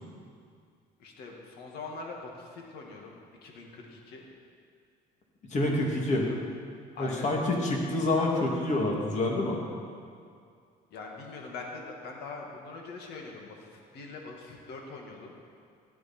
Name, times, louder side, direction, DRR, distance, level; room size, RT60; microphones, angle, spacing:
voice 1, 1.0-4.3 6.1-6.4 6.9-7.3 10.9-13.7 13.9-15.4, left 3 dB, 75° left, 0 dB, 2.1 m, -43 dB
voice 2, 5.5-6.3 7.0-9.6, left 2 dB, 45° left, -1 dB, 2.6 m, -27 dB
16.0 x 11.5 x 4.5 m, 2.2 s
cardioid pair, 110°, 17 cm